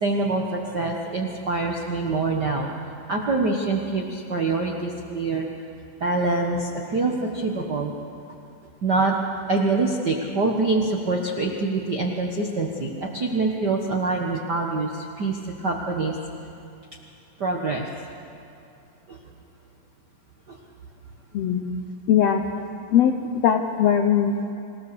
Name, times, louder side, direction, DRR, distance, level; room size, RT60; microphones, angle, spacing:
voice 1, 0.0-2.7 3.1-5.5 6.0-7.9 8.8-9.2 9.5-16.1 17.4-17.8 19.1-19.2 20.5-20.6, right 3 dB, 60° right, 0 dB, 1.0 m, -25 dB
voice 2, 21.3-21.7 22.1-22.4 22.9-24.5, left 8 dB, 75° left, 4 dB, 1.5 m, -20 dB
27.0 x 17.5 x 6.9 m, 2.6 s
omnidirectional pair, 4.1 m